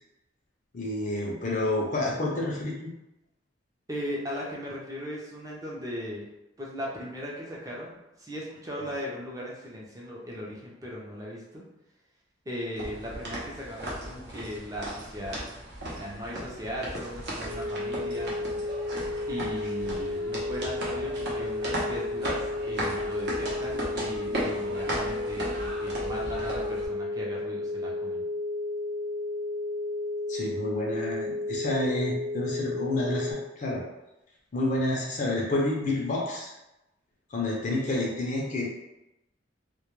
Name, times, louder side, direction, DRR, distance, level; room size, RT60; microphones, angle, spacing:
voice 1, 0.7-2.9 30.3-33.8 34.5-36.5 37.3-38.7, left 2 dB, 40° left, -3 dB, 0.5 m, -29 dB
voice 2, 3.9-6.3 6.6-11.6 12.5-15.4 15.9-18.3 19.3-28.2, equal, 20° right, -4 dB, 0.5 m, -38 dB
sound 1, 12.8-26.9, right 1 dB, 60° right, 0.7 m, -36 dB
sound 2, 17.4-33.3, left 2 dB, 35° right, 0.9 m, -32 dB
2.2 x 2.1 x 3.0 m, 0.93 s
head